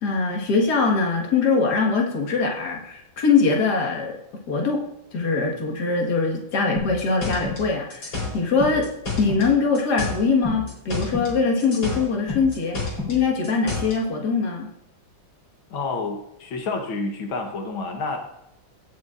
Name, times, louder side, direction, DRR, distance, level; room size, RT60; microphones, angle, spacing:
voice 1, 0.0-4.2 4.5-4.8 5.1-8.9 9.2-14.7, left 4 dB, 55° left, 0 dB, 2.2 m, -22 dB
sound 1, 6.8-9.5 9.8-11.3 11.6-14.0, left 3 dB, 75° left, 5.0 m, -29 dB
voice 2, 15.7-18.2, left 3 dB, 90° left, 3 dB, 2.1 m, -29 dB
17.0 x 8.2 x 2.5 m, 0.80 s
omnidirectional pair, 2.1 m